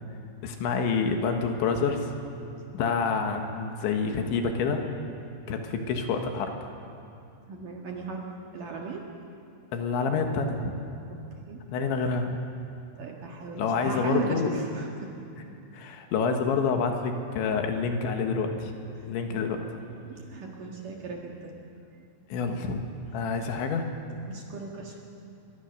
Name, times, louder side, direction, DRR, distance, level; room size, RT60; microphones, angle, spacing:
voice 1, 0.4-2.1 2.7-4.8 5.5-6.5 9.7-10.7 11.7-12.4 13.6-14.5 15.7-18.7 19.1-19.6 22.3-22.9 23.1-23.9, left 5 dB, 75° left, 4 dB, 3.8 m, -27 dB
voice 2, 7.5-8.3 8.5-9.0 11.1-11.2 11.5-11.6 13.0-15.1 19.0-19.1 19.3-19.4 20.0-21.6 24.3-25.0, right 4 dB, 55° right, 0 dB, 2.7 m, -37 dB
25.5 x 22.5 x 6.7 m, 2.6 s
omnidirectional pair, 5.6 m